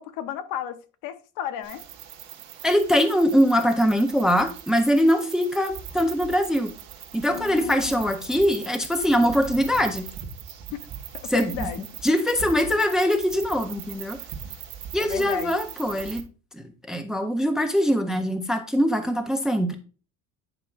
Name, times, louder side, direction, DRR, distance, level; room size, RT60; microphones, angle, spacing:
voice 1, 0.0-1.8 7.3-8.1 10.7-10.9 11.2-11.8 15.0-15.6, left 10 dB, 80° left, 0.7 m, -34 dB
sound 1, 1.6-16.2, right 8 dB, 50° right, 1.5 m, -40 dB
voice 2, 2.6-6.7 7.1-10.1 11.3-11.7 12.0-14.2 14.9-16.2 16.5-19.8, equal, ahead, 0.3 m, -22 dB
9.7 x 5.5 x 2.3 m
cardioid pair, 180°, 34 cm